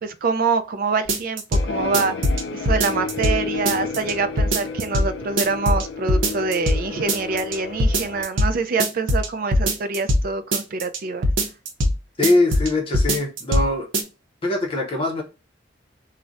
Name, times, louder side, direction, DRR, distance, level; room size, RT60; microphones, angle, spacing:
voice 1, 0.0-2.3 2.5-11.3, right 4 dB, 45° right, 0.3 m, -25 dB
sound 1, 1.1-1.6 1.9-3.4 3.6-4.1 4.4-5.1 5.4-5.8 6.1-6.8 7.1-7.5 7.8-8.5 8.8-10.2 10.5-11.0 11.2-11.9 12.2-12.7 12.9-13.7 13.9-14.0, equal, 85° right, 0.6 m, -20 dB
sound 2, 1.5-8.2, left 4 dB, 75° left, 0.5 m, -32 dB
voice 2, 12.2-13.9 14.4-15.2, left 2 dB, 30° left, 0.6 m, -22 dB
2.4 x 2.1 x 3.8 m
head